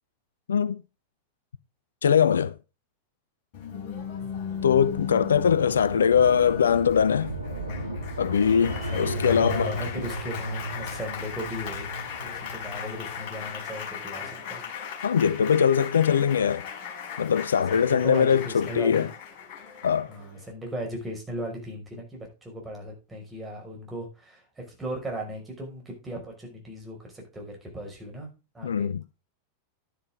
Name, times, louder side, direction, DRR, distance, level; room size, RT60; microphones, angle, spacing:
voice 1, 0.5-0.8 2.0-2.6 4.6-7.3 8.2-9.7 15.0-16.7 17.2-19.1 19.8-20.1 28.6-29.0, left 7 dB, 70° left, 0.5 m, -22 dB
Applause, 3.5-20.5, left 7 dB, 40° left, 6.0 m, -38 dB
sound 1, 4.6-13.4, right 1 dB, 80° right, 1.9 m, -35 dB
voice 2, 8.6-14.6 17.7-19.1 20.1-28.9, equal, 10° right, 5.7 m, -37 dB
11.5 x 10.5 x 3.8 m
figure-of-eight pair, 90°, 0 cm